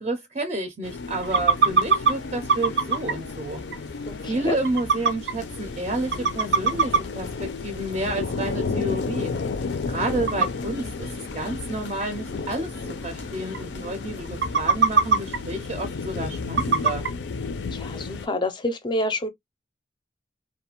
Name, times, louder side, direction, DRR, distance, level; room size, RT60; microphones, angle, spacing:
voice 1, 0.0-3.6 4.2-9.3 9.9-17.1, right 1 dB, 35° right, 0.4 m, -30 dB
sound 1, 0.8-18.3, left 4 dB, 85° left, 0.4 m, -33 dB
sound 2, 1.2-2.1 2.5-3.2 3.7-3.8 4.1-4.2 4.6-5.3 5.8-5.9 6.1-7.0 7.4-7.5 8.7-8.8 9.1-9.2 10.3-10.5 11.3-11.4 12.0-12.1 12.4-12.5 12.7-12.8 13.3-13.4 13.5-13.9 14.3-15.4 16.6-17.1, right 4 dB, 85° right, 0.6 m, -20 dB
voice 2, 4.1-4.6 17.7-19.3, left 1 dB, 25° left, 0.4 m, -28 dB
2.4 x 2.2 x 2.9 m
head